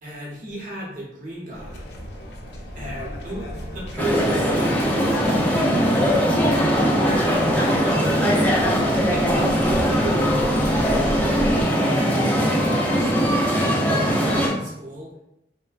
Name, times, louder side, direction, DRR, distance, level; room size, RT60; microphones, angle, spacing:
voice 1, 0.0-1.8 2.7-5.7 6.6-8.8 9.1-11.4 11.9-15.1, equal, 45° right, -4 dB, 0.8 m, -35 dB
sound 1, 1.5-11.6, equal, 70° left, 0.5 m, -35 dB
sound 2, 4.0-14.5, equal, 10° left, 0.4 m, -20 dB
3.2 x 2.1 x 2.4 m, 0.84 s
head